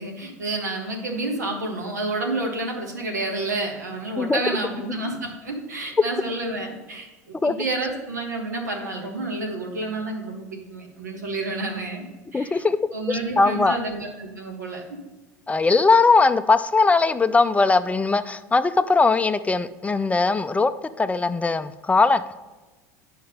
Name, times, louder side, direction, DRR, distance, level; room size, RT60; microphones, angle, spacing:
voice 1, 0.0-12.0 12.3-12.6 12.9-14.8, right 2 dB, 90° right, 1 dB, 1.7 m, -29 dB
voice 2, 12.3-12.8 13.1-13.8 15.5-20.7 21.0-22.2, left 3 dB, 15° left, 12 dB, 0.4 m, -20 dB
9.4 x 5.1 x 5.4 m, 1.2 s
hypercardioid pair, 80°, 9 cm